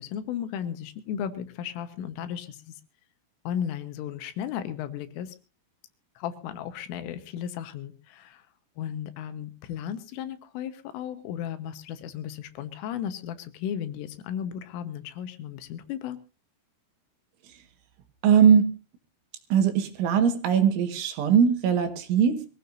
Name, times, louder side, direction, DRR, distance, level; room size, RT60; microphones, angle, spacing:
voice 1, 0.0-2.7 3.5-5.4 6.2-8.4 8.8-16.2, left 9 dB, 80° left, 10 dB, 3.6 m, -35 dB
voice 2, 18.2-18.7 19.5-22.5, right 7 dB, 70° right, 7 dB, 3.8 m, -20 dB
24.0 x 16.5 x 2.6 m, 0.32 s
omnidirectional pair, 5.9 m